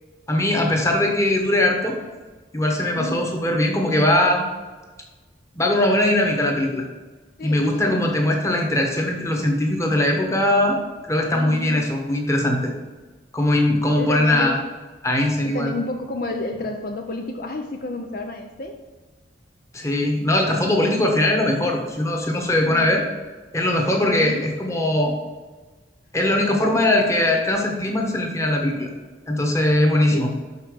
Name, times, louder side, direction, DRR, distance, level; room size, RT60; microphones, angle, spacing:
voice 1, 0.3-2.0 2.5-4.4 5.5-6.8 7.4-10.8 11.1-12.7 13.3-14.6 15.0-15.7 19.7-23.0 23.5-25.1 26.1-28.9 29.3-30.3, left 1 dB, 15° left, 1 dB, 1.3 m, -20 dB
voice 2, 3.0-3.3 7.4-8.0 11.3-11.9 14.0-14.6 15.4-18.8 22.7-22.9 24.0-24.5 30.1-30.3, left 2 dB, 50° left, 4 dB, 0.6 m, -31 dB
5.9 x 5.5 x 6.3 m, 1.3 s
head